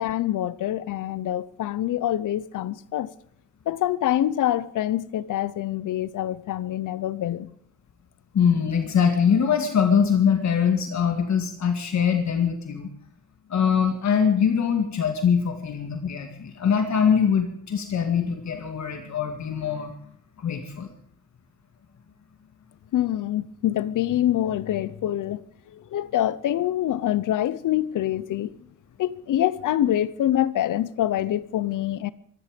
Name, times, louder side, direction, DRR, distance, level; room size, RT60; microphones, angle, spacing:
voice 1, 0.0-3.1 3.7-7.5 22.9-25.4 25.7-28.5 29.0-32.1, left 12 dB, 90° left, 0.8 m, -25 dB
voice 2, 8.3-12.9 13.5-19.9 20.4-20.9, left 7 dB, 65° left, 2.0 m, -23 dB
24.5 x 11.5 x 5.2 m
wide cardioid pair, 130°, 30 cm